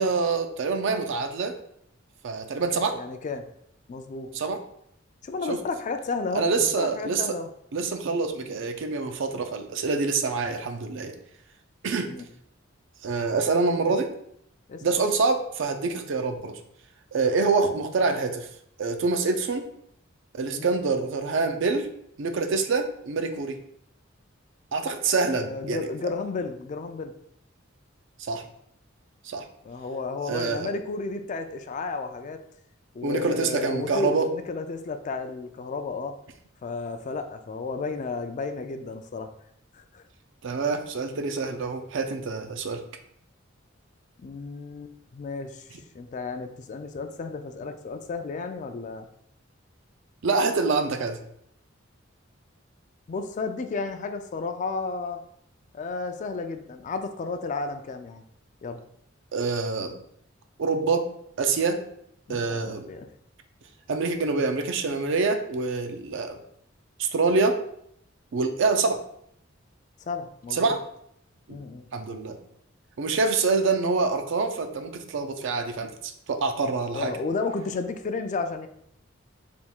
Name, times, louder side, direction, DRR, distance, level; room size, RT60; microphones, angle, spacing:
voice 1, 0.0-1.5 2.2-3.0 4.3-4.6 5.5-5.6 6.3-7.3 7.7-11.1 11.8-12.1 13.0-14.1 14.8-16.5 17.1-18.5 18.8-19.7 20.3-21.9 22.2-23.6 24.7-25.9 28.2-28.4 29.2-29.5 30.3-30.7 33.0-34.3 40.4-42.8 50.2-51.2 59.3-60.0 60.6-61.1 61.4-61.8 62.3-62.9 63.9-66.4 67.0-67.6 68.3-69.0 70.5-70.8 71.5-71.6 71.9-72.4 73.0-77.1, right 4 dB, 65° right, 7 dB, 0.4 m, -26 dB
voice 2, 2.7-3.4 3.9-4.3 5.2-7.5 12.1-12.3 14.7-14.8 20.5-20.7 25.3-27.1 29.6-32.4 32.9-36.1 36.6-39.3 39.7-40.0 44.2-45.7 45.9-49.1 53.1-55.2 55.7-58.2 58.6-58.8 62.3-63.1 70.1-70.7 71.5-71.8 76.9-78.7, left 4 dB, 40° left, 8 dB, 0.3 m, -32 dB
3.4 x 2.3 x 4.4 m, 0.71 s
head